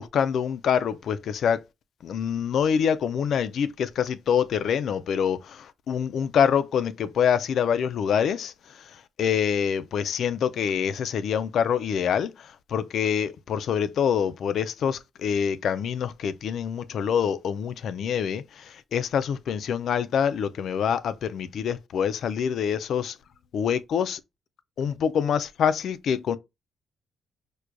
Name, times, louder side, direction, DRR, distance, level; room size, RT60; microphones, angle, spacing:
voice 1, 0.0-1.6 2.0-23.2 23.5-24.2 24.8-26.4, left 8 dB, 65° left, 0.3 m, -26 dB
4.6 x 2.1 x 2.5 m
cardioid pair, 90°, 0 cm